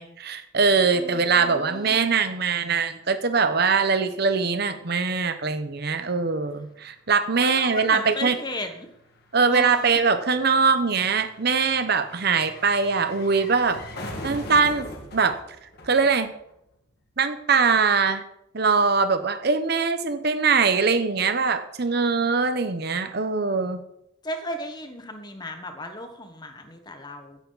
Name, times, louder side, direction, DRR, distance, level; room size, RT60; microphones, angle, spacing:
voice 1, 0.0-8.4 9.3-13.8 14.2-15.4 15.9-16.3 17.2-18.2 18.5-23.8, right 5 dB, 55° right, 9 dB, 0.9 m, -22 dB
voice 2, 1.0-1.9 7.4-8.9 9.5-10.0 24.2-27.4, left 1 dB, 20° left, 6 dB, 1.3 m, -35 dB
sound 1, 6.3-16.7 17.0-17.1, left 1 dB, 50° left, 2.1 m, -42 dB
16.0 x 9.2 x 4.1 m, 0.80 s
head